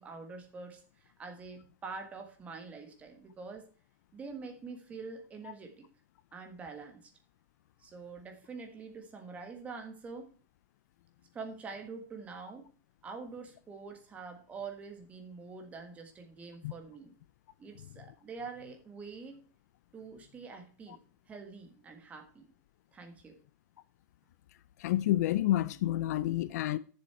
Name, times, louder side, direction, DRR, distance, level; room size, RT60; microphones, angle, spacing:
voice 1, 0.0-3.7 4.1-5.8 6.3-7.1 7.8-10.3 11.3-12.6 13.0-17.1 17.6-19.4 19.9-21.0 21.3-22.5 22.9-23.3, right 4 dB, 15° right, 1.5 m, -45 dB
voice 2, 24.8-26.8, left 14 dB, 55° left, 0.4 m, -29 dB
9.8 x 7.2 x 4.4 m
supercardioid pair, 175°, 10 cm